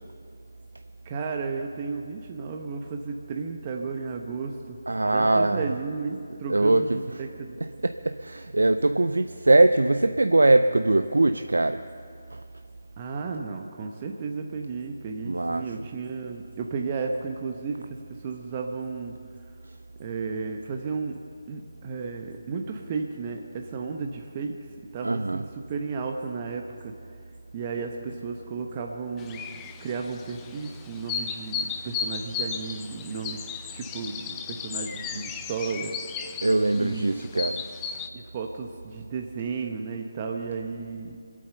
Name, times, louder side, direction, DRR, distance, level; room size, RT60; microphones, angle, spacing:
voice 1, 1.0-4.8 5.0-7.6 13.0-19.1 20.0-21.1 21.5-24.5 24.9-26.9 27.5-29.4 29.8-33.4 33.7-36.4 36.8-37.1 38.1-41.2, right 5 dB, 30° right, 2 dB, 1.0 m, -33 dB
voice 2, 4.9-5.7 6.5-7.0 7.8-11.8 12.3-12.4 15.2-15.6 25.0-25.4 35.1-35.2 36.4-37.6, right 2 dB, 80° right, 9 dB, 0.5 m, -22 dB
sound 1, 29.2-38.1, left 6 dB, 15° left, 0.6 m, -35 dB
23.5 x 8.6 x 6.8 m, 2.3 s
figure-of-eight pair, 150°, 0 cm